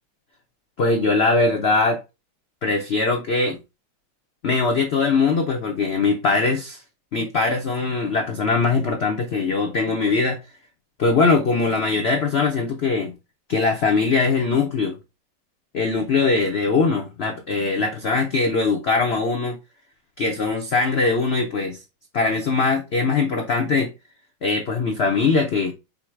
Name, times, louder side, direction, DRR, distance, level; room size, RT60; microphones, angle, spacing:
voice 1, 0.8-2.0 2.6-3.6 4.4-6.8 7.1-10.4 11.0-13.1 13.5-15.0 15.7-19.6 20.2-21.8 22.1-23.9 24.4-25.7, left 4 dB, 85° left, 0.5 m, -21 dB
5.4 x 2.1 x 4.5 m
omnidirectional pair, 2.1 m